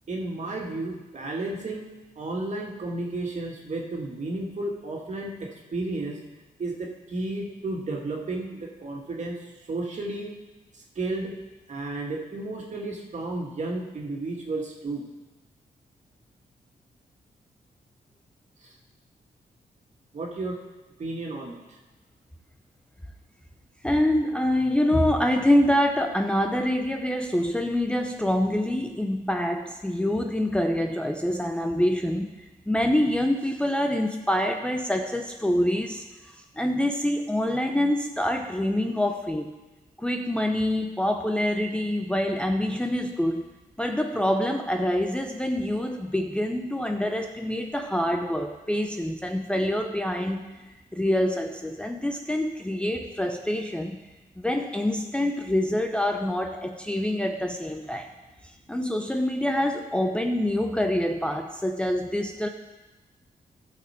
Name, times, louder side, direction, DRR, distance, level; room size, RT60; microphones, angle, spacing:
voice 1, 0.1-1.9 2.2-6.2 6.6-9.3 9.7-10.3 11.0-11.3 11.7-15.0 18.6-18.7 20.1-20.6 21.0-21.6, right 2 dB, 50° right, -1 dB, 2.1 m, -32 dB
voice 2, 23.8-32.3 32.7-36.0 36.6-39.5 40.0-43.5 43.8-50.6 50.9-54.0 54.4-58.1 58.7-62.5, left 1 dB, 5° left, 3 dB, 0.6 m, -26 dB
16.0 x 6.4 x 4.4 m, 1.1 s
cardioid pair, 105°, 16 cm